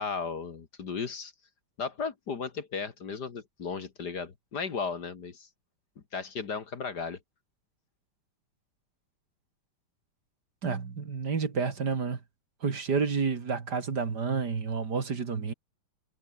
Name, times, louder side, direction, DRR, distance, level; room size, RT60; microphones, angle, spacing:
voice 1, 0.0-1.3 1.8-5.5 6.1-7.2, left 5 dB, 50° left, 2.3 m, -35 dB
voice 2, 10.6-12.2 12.6-15.5, right 5 dB, 50° right, 2.7 m, -30 dB
omnidirectional pair, 2.3 m